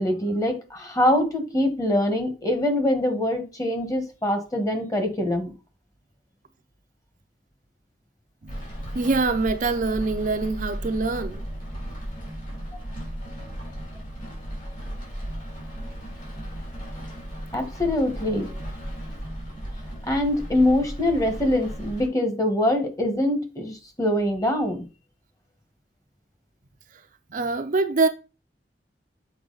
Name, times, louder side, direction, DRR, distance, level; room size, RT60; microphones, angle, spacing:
voice 1, 0.0-5.5 17.5-18.6 20.0-24.9, left 1 dB, 20° left, 1.3 m, -24 dB
Rain, 8.5-22.1, equal, 50° left, 3.6 m, -35 dB
voice 2, 8.9-11.4 27.3-28.1, right 3 dB, 50° right, 0.6 m, -24 dB
7.2 x 4.6 x 3.9 m
head